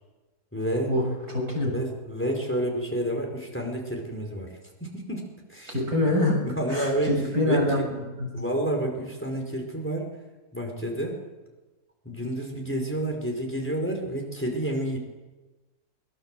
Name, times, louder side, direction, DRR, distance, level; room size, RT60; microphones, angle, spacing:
voice 1, 0.5-0.9 1.7-5.7 6.0-6.2 6.4-7.8 8.3-10.1 10.5-11.2 12.0-15.0, right 1 dB, 5° left, 2 dB, 5.0 m, -30 dB
voice 2, 1.3-1.7 5.7-6.3 6.7-8.3, left 1 dB, 75° right, 0 dB, 7.4 m, -25 dB
23.0 x 22.5 x 7.8 m, 1.2 s
omnidirectional pair, 1.7 m